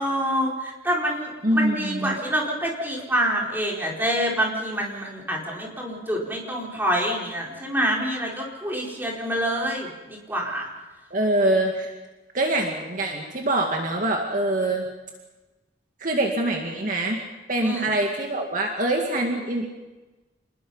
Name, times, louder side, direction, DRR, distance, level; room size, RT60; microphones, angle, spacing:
voice 1, 0.0-10.7 17.6-17.9, equal, 10° right, -2 dB, 4.6 m, -26 dB
voice 2, 1.4-2.1 11.1-11.9 12.3-14.9 16.0-17.2 17.5-19.7, right 1 dB, 45° right, 1 dB, 2.1 m, -24 dB
28.0 x 20.5 x 5.6 m, 1.1 s
head